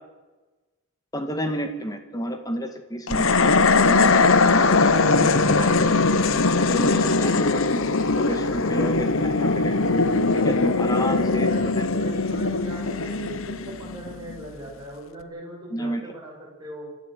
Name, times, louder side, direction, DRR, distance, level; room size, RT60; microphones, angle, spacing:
voice 1, 1.1-4.7 5.1-5.9 6.6-7.8 8.2-9.8 10.4-11.9 15.7-16.0, equal, 15° left, 6 dB, 1.9 m, -31 dB
sound 1, 3.1-14.4, left 3 dB, 70° left, 1.0 m, -20 dB
voice 2, 6.9-7.2 10.6-16.9, right 1 dB, 20° right, -3 dB, 7.2 m, -39 dB
26.5 x 12.5 x 8.1 m, 1.2 s
head